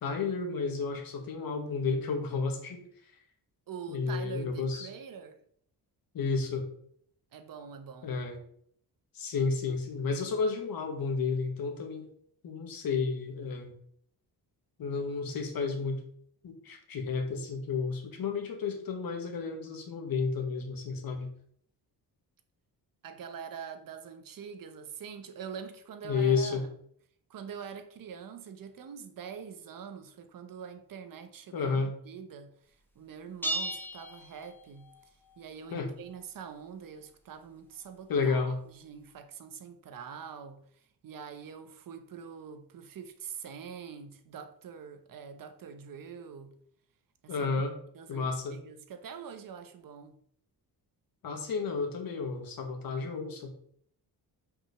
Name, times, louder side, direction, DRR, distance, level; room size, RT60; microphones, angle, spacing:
voice 1, 0.0-2.8 3.9-4.9 6.1-6.7 8.0-8.4 9.1-12.1 12.4-13.7 14.8-16.0 16.4-21.3 26.0-26.6 31.5-31.9 35.7-35.9 38.1-38.5 47.3-47.7 48.1-48.6 51.2-53.5, left 4 dB, 65° left, 1.9 m, -31 dB
voice 2, 3.7-5.4 7.3-8.1 23.0-26.7 27.3-34.9 35.4-46.6 47.2-47.5 47.9-50.2, right 7 dB, 60° right, 1.1 m, -45 dB
sound 1, 33.4-35.0, right 1 dB, 5° left, 1.1 m, -35 dB
6.0 x 5.3 x 6.7 m
wide cardioid pair, 180°, 38 cm